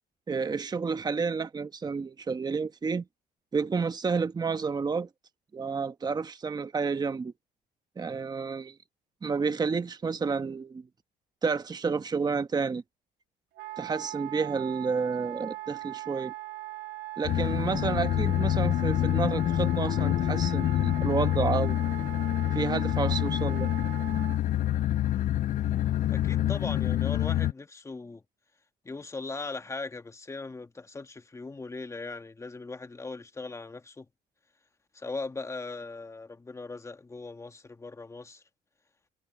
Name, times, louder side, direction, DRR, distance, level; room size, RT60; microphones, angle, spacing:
voice 1, 0.3-3.0 3.5-5.1 5.5-7.3 8.0-8.7 9.2-10.9 11.4-12.8 13.8-16.3 17.2-21.8 22.5-23.7, right 5 dB, 25° right, 1.1 m, -30 dB
Wind instrument woodwind instrument, 13.6-24.4, right 18 dB, 80° right, 2.3 m, -40 dB
sound 1, 17.2-27.5, left 13 dB, 50° left, 0.4 m, -27 dB
voice 2, 26.1-28.2 28.8-34.1 34.9-38.4, left 3 dB, 15° left, 1.5 m, -39 dB
cardioid pair, 110°, 17 cm